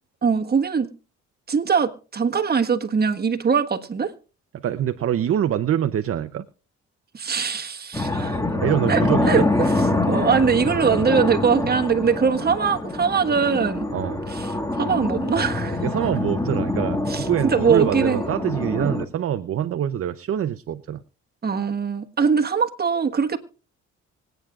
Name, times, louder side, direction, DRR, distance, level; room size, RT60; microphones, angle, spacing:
voice 1, 0.2-0.9 1.5-4.1 7.1-8.4 8.9-9.0 9.3-9.7 10.1-13.9 14.3-14.5 14.8-15.8 17.1-18.2 18.8-18.9 21.4-23.4, right 6 dB, 35° right, 1.4 m, -22 dB
voice 2, 4.6-6.4 8.6-9.5 13.9-14.2 15.8-21.0, right 10 dB, 50° right, 0.6 m, -25 dB
sound 1, 7.9-19.1, left 2 dB, 10° left, 1.5 m, -25 dB
25.5 x 9.0 x 2.4 m
cardioid pair, 90°, 30 cm